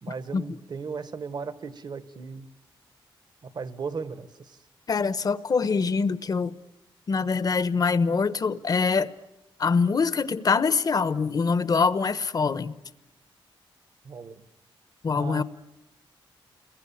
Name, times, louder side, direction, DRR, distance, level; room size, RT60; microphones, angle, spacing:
voice 1, 0.0-2.5 3.4-4.6 14.0-14.4 15.1-15.4, right 5 dB, 50° right, 1.4 m, -36 dB
voice 2, 4.9-6.5 7.1-9.1 9.6-12.7 15.0-15.4, left 5 dB, 45° left, 1.0 m, -24 dB
29.5 x 22.0 x 8.8 m
wide cardioid pair, 115°, 9 cm